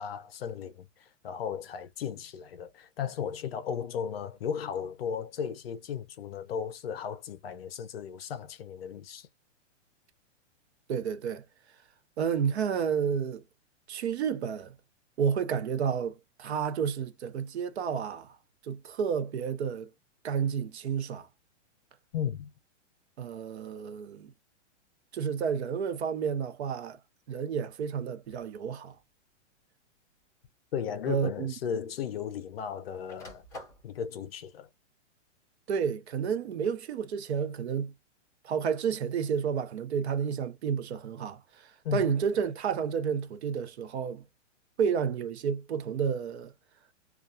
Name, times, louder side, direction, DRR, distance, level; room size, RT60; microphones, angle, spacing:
voice 1, 0.0-9.3 22.1-22.5 30.7-33.4 33.8-34.7 41.8-42.1, left 8 dB, 50° left, 0.5 m, -35 dB
voice 2, 10.9-11.4 12.2-13.4 13.9-14.7 15.2-18.3 18.6-19.9 20.2-21.3 23.2-24.3 25.1-27.0 27.3-29.0 31.1-31.5 35.7-37.9 38.4-44.2 44.8-46.5, right 7 dB, 60° right, 0.7 m, -31 dB
sound 1, 28.2-28.6 29.6-29.7 31.1-31.2 31.4-32.5 32.8-33.9, left 1 dB, 5° left, 0.9 m, -48 dB
2.3 x 2.2 x 2.5 m
hypercardioid pair, 175°, 37 cm